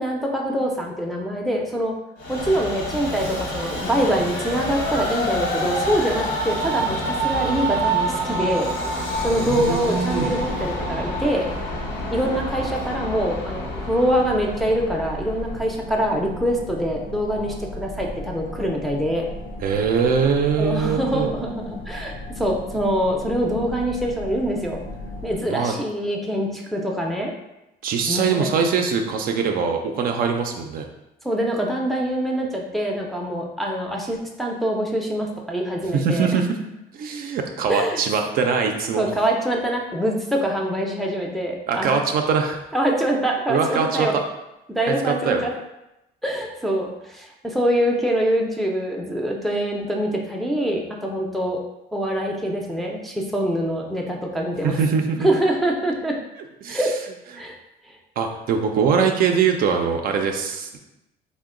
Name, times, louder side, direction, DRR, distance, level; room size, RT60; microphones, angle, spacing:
voice 1, 0.0-1.9 2.3-8.7 9.2-11.5 12.1-19.3 20.6-24.8 25.2-27.3 28.1-28.5 31.2-36.3 37.7-38.0 39.0-41.9 42.7-44.1 44.7-45.5 46.2-51.6 51.9-54.8 55.2-56.2 56.7-56.9 57.4-57.5, equal, ahead, -1 dB, 0.4 m, -24 dB
Train, 2.2-15.7, right 1 dB, 85° left, 0.9 m, -27 dB
sound 1, 9.1-25.4, left 1 dB, 60° left, 0.5 m, -36 dB
voice 2, 9.3-10.5 19.6-21.3 25.5-25.7 27.8-30.9 35.9-36.6 37.0-39.1 41.7-42.6 43.5-44.2 44.9-45.4 54.6-55.3 56.6-56.8 58.2-60.8, right 6 dB, 60° right, 4 dB, 0.4 m, -22 dB
2.9 x 2.1 x 3.6 m, 0.92 s
cardioid pair, 110°, 17 cm